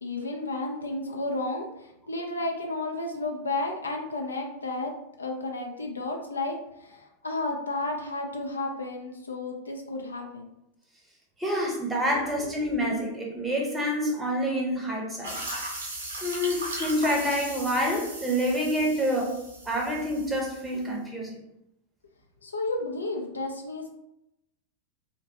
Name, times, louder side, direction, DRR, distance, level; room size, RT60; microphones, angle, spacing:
voice 1, 0.0-4.9 5.2-10.5 12.1-12.2 22.4-23.9, left 2 dB, 75° left, 2 dB, 0.4 m, -32 dB
voice 2, 11.4-15.4 16.2-21.4, equal, 10° right, -1 dB, 0.7 m, -27 dB
sound 1, 15.2-20.8, right 2 dB, 70° right, 0.8 m, -38 dB
2.8 x 2.1 x 2.7 m, 0.83 s
figure-of-eight pair, 90°, 0 cm